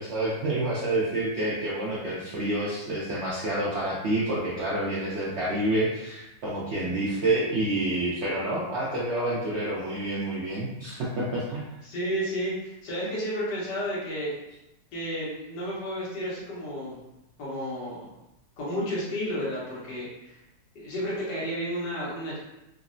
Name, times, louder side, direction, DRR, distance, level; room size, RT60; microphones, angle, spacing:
voice 1, 0.0-11.7, right 1 dB, 70° right, -7 dB, 0.6 m, -28 dB
voice 2, 11.8-14.4 14.9-17.0 17.4-18.1 18.6-20.4 20.7-22.4, equal, 80° left, -8 dB, 1.6 m, -32 dB
3.7 x 2.1 x 2.5 m, 0.90 s
omnidirectional pair, 1.8 m